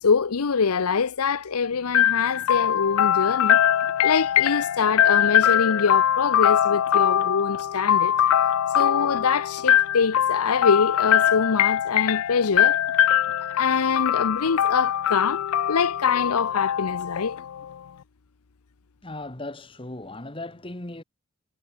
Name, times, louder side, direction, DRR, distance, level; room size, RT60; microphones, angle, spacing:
voice 1, 0.0-3.6 4.0-8.1 8.7-12.8 13.5-15.4 15.7-17.4, left 5 dB, 85° left, 0.7 m, -24 dB
sound 1, 1.9-17.7, left 10 dB, 70° left, 0.3 m, -22 dB
voice 2, 19.0-21.0, left 2 dB, 25° left, 1.6 m, -37 dB
head